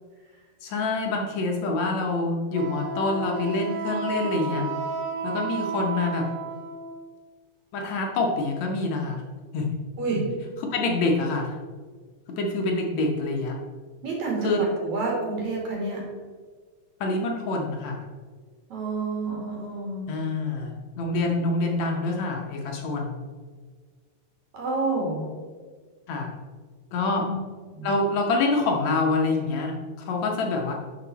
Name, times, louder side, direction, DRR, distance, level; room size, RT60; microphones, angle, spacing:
voice 1, 0.6-4.7 5.2-6.3 7.7-9.2 9.5-9.7 10.7-11.5 12.3-13.6 14.4-14.6 17.0-18.0 20.1-23.2 26.1-26.3 26.9-27.3 27.8-30.7, left 3 dB, 65° left, 1 dB, 2.1 m, -26 dB
Wind instrument woodwind instrument, 2.5-7.0, right 4 dB, 80° right, 2.5 m, -32 dB
voice 2, 10.0-10.3 14.0-16.0 18.7-20.1 24.5-25.2 27.2-27.4 27.7-27.9, right 3 dB, 60° right, -2 dB, 3.5 m, -29 dB
11.5 x 6.0 x 4.1 m, 1.5 s
omnidirectional pair, 3.7 m